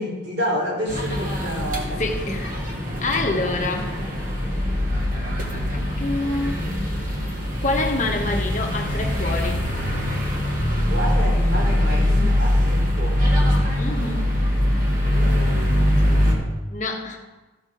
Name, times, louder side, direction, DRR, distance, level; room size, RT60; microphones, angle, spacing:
voice 1, 0.0-2.0 2.7-3.2 10.8-13.6 14.4-16.5, equal, 65° right, -3 dB, 3.5 m, -30 dB
sound 1, 0.9-16.3, left 1 dB, 45° right, 2.0 m, -22 dB
voice 2, 2.0-2.6 3.0-4.1 5.5-6.6 7.6-9.6 13.8-14.3 16.7-17.2, left 2 dB, 40° left, 2 dB, 1.2 m, -27 dB
14.5 x 6.5 x 4.9 m, 1.2 s
head